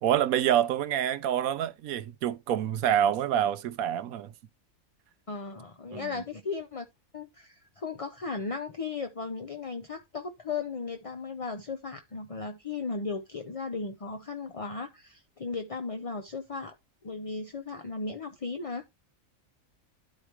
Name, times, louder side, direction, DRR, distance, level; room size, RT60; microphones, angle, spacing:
voice 1, 0.0-4.3 5.9-6.2, right 10 dB, 80° right, 1.0 m, -27 dB
voice 2, 5.3-6.9 7.1-16.7 17.0-18.8, left 4 dB, 35° left, 0.6 m, -36 dB
12.0 x 4.9 x 3.0 m
omnidirectional pair, 1.5 m